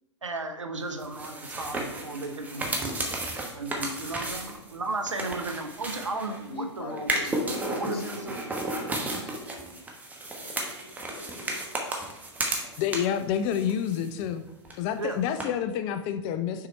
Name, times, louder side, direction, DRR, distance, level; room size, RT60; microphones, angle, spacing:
voice 1, 0.2-3.0 3.5-7.1 7.8-8.4 15.0-15.2, right 2 dB, 85° right, 6 dB, 0.8 m, -34 dB
sound 1, 1.0-6.5 7.0-13.2 13.5-14.4 14.6-14.7 15.4-15.5, right 2 dB, 10° right, 1.0 m, -33 dB
voice 2, 6.4-9.9 10.2-12.0, left 3 dB, 55° left, 3 dB, 1.2 m, -43 dB
voice 3, 12.8-14.5 14.8-16.7, left 9 dB, 30° left, 10 dB, 0.4 m, -28 dB
6.2 x 4.1 x 4.3 m, 0.93 s
figure-of-eight pair, 105°, 15 cm